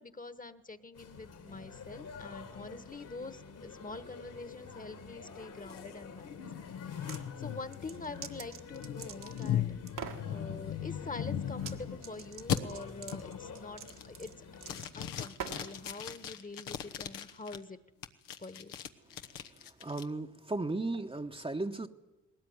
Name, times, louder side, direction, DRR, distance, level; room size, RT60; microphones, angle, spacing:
voice 1, 0.0-6.5 6.9-7.0 7.4-9.8 10.3-14.5 14.9-17.8 18.4-18.7, left 3 dB, 25° left, 13 dB, 1.3 m, -45 dB
sound 1, 0.9-14.8, left 5 dB, 70° left, 3.3 m, -49 dB
sound 2, 5.7-12.0 12.5-12.6 13.1-13.4 13.8-14.3 14.6-17.6 18.0-20.0, left 9 dB, 85° left, 1.1 m, -38 dB
sound 3, 6.8-7.2 7.7-9.5 9.9-10.3 11.5-11.8 12.0-15.8, right 8 dB, 70° right, 1.7 m, -45 dB
voice 2, 19.8-21.9, right 2 dB, 15° right, 5 dB, 1.0 m, -35 dB
20.0 x 18.0 x 9.5 m, 1.1 s
supercardioid pair, 55°, 33 cm